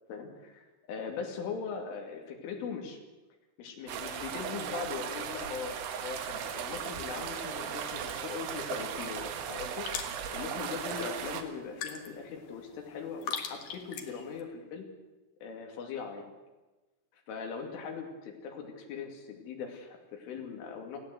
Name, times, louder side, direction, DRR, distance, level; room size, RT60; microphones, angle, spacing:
voice 1, 0.1-3.0 3.6-9.9 10.3-14.9 15.4-16.3 17.1-21.0, left 6 dB, 80° left, 3 dB, 5.1 m, -40 dB
sound 1, 3.9-11.4, right 8 dB, 75° right, 3.8 m, -37 dB
sound 2, 8.6-14.4, left 7 dB, 60° left, 2.6 m, -43 dB
20.5 x 16.0 x 7.9 m, 1.2 s
omnidirectional pair, 5.6 m